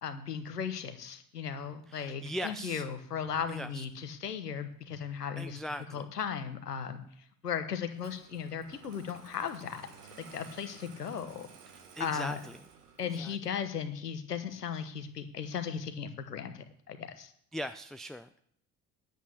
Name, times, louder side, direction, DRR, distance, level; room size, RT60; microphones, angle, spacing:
voice 1, 0.0-5.6 5.9-7.0 7.4-9.9 10.3-11.5 12.0-12.4 13.0-17.3, left 7 dB, 90° left, 8 dB, 1.2 m, -36 dB
voice 2, 1.9-2.9 3.5-3.9 5.4-6.1 11.9-12.6 13.1-13.4 17.5-18.4, equal, ahead, 9 dB, 0.4 m, -40 dB
Engine starting, 8.0-13.4, right 6 dB, 80° right, 1.6 m, -54 dB
10.5 x 8.3 x 8.3 m, 0.65 s
figure-of-eight pair, 60°, 46 cm